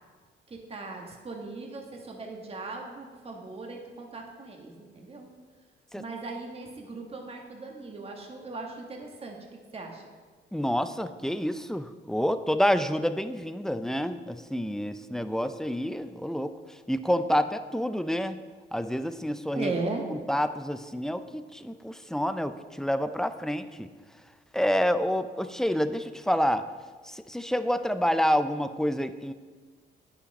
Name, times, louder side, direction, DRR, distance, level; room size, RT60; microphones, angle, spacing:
voice 1, 0.5-5.3 5.9-9.4 9.7-10.0 19.5-20.0, right 3 dB, 30° right, 1 dB, 1.5 m, -38 dB
voice 2, 10.5-16.5 16.9-18.4 18.7-19.7 20.1-23.9 24.5-26.7 27.0-29.3, equal, 5° left, 11 dB, 0.5 m, -28 dB
9.5 x 7.2 x 5.3 m, 1.5 s
cardioid pair, 90°, 20 cm